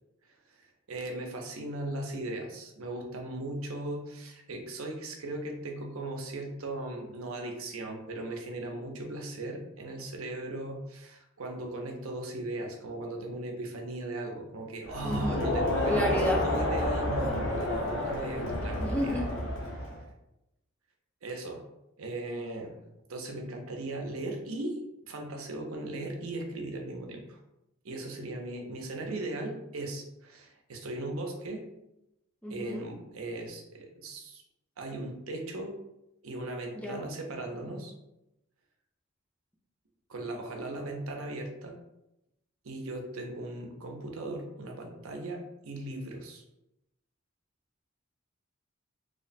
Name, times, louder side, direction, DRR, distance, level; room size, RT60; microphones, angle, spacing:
voice 1, 0.5-19.2 19.8-19.9 21.2-21.6 22.0-22.8 23.1-27.4 27.8-31.6 32.5-34.4 34.8-35.8 36.2-37.9 40.1-41.7 42.6-46.4, right 2 dB, 90° right, 2 dB, 0.7 m, -38 dB
Crowd, 14.9-20.0, left 1 dB, 60° left, 0.9 m, -30 dB
voice 2, 15.0-15.4 15.9-16.4 18.8-19.3 32.4-32.9 36.7-37.1, equal, 5° left, -1 dB, 0.5 m, -31 dB
3.1 x 2.1 x 4.0 m, 0.90 s
head